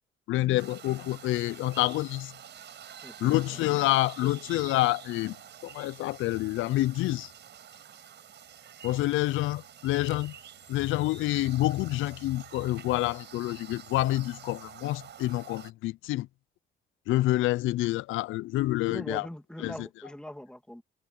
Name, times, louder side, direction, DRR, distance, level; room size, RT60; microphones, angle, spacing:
voice 1, 0.3-2.3 3.2-5.4 5.6-7.3 8.8-10.3 10.7-16.3 17.1-19.3 19.6-19.9, left 17 dB, 85° left, 0.5 m, -27 dB
sound 1, 0.6-15.7, right 9 dB, 60° right, 5.6 m, -48 dB
voice 2, 3.0-3.6 18.8-20.8, left 1 dB, 5° left, 2.7 m, -41 dB
cardioid pair, 90°, 20 cm